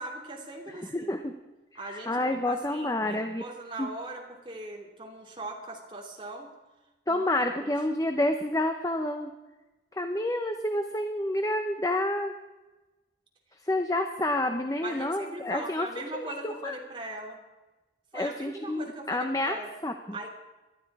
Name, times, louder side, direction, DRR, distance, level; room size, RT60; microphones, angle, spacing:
voice 1, 0.0-1.2 1.7-6.5 7.1-7.7 14.8-17.4 18.1-19.7 20.1-20.3, right 2 dB, 30° right, 0 dB, 2.7 m, -40 dB
voice 2, 0.9-1.3 1.9-3.4 3.8-3.9 7.1-9.3 9.9-12.3 13.6-15.9 16.1-16.7 18.1-19.9, left 1 dB, 20° left, 6 dB, 0.8 m, -29 dB
18.5 x 12.5 x 4.8 m, 1.1 s
head